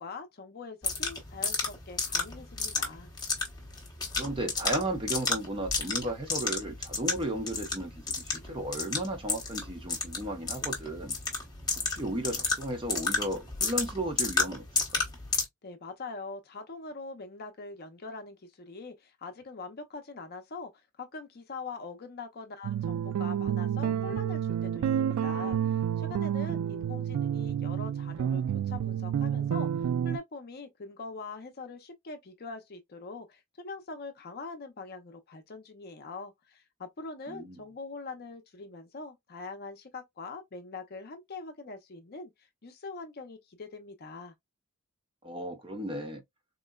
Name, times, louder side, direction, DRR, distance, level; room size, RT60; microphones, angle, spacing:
voice 1, 0.0-3.1 15.6-20.7 21.0-42.3 42.6-44.3, left 3 dB, 45° left, 0.6 m, -43 dB
sound 1, 0.8-15.4, left 4 dB, 20° left, 0.9 m, -32 dB
voice 2, 4.2-11.2 11.9-14.6 14.9-15.0 37.3-37.6 45.2-46.2, right 1 dB, 25° right, 0.8 m, -34 dB
sound 2, 22.6-30.2, right 9 dB, 75° right, 0.3 m, -29 dB
3.7 x 2.1 x 2.2 m
head